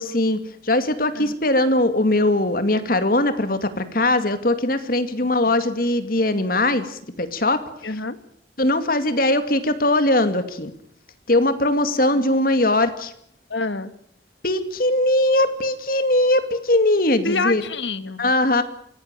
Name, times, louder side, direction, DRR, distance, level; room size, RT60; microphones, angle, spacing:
voice 1, 0.0-7.6 8.6-10.7 11.3-13.1 14.4-17.6 18.2-18.6, left 1 dB, 50° left, 10 dB, 2.3 m, -20 dB
voice 2, 7.8-8.2 12.2-12.3 13.5-13.9 17.2-18.3, left 3 dB, 75° left, 13 dB, 1.8 m, -27 dB
24.5 x 17.0 x 9.1 m, 0.70 s
head